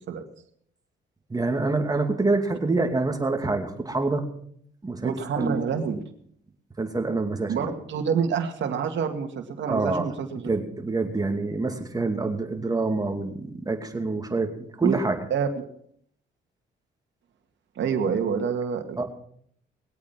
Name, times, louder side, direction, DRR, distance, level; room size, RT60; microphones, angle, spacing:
voice 1, 1.3-4.3 4.8-5.6 6.8-7.7 9.7-10.0 10.4-14.5 14.8-15.2 19.0-19.1, right 3 dB, 20° right, 5 dB, 2.5 m, -26 dB
voice 2, 5.0-6.0 7.5-10.5 14.8-15.0 15.3-15.5 17.8-19.0, right 7 dB, 65° right, 4 dB, 2.1 m, -27 dB
20.5 x 8.7 x 5.9 m, 0.64 s
cardioid pair, 90°, 20 cm